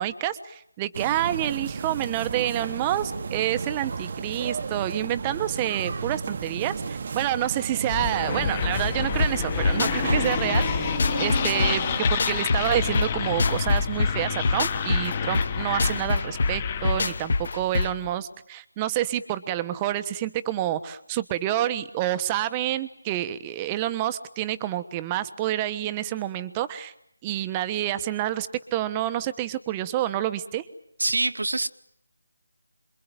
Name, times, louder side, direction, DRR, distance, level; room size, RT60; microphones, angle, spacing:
voice 1, 0.0-10.9 11.2-26.9 27.2-30.6, right 13 dB, 15° right, 1.2 m, -28 dB
sound 1, 0.9-12.0, right 5 dB, 40° right, 1.3 m, -33 dB
sound 2, 7.9-17.3, left 7 dB, 20° left, 1.7 m, -29 dB
sound 3, 9.2-18.1, left 3 dB, 45° left, 1.9 m, -26 dB
voice 2, 31.0-31.7, right 2 dB, 80° right, 1.8 m, -25 dB
27.5 x 23.0 x 9.1 m
figure-of-eight pair, 170°, 0 cm